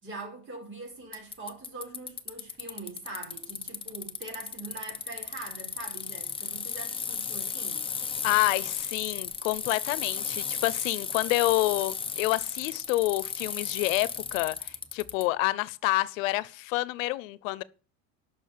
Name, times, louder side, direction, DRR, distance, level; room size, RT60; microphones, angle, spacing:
voice 1, 0.0-7.9, right 3 dB, 30° right, 5.3 m, -43 dB
Bicycle, 1.1-15.2, left 6 dB, 15° left, 0.9 m, -35 dB
voice 2, 8.2-17.6, left 19 dB, 85° left, 0.9 m, -28 dB
11.0 x 6.4 x 8.5 m
supercardioid pair, 145°, 39 cm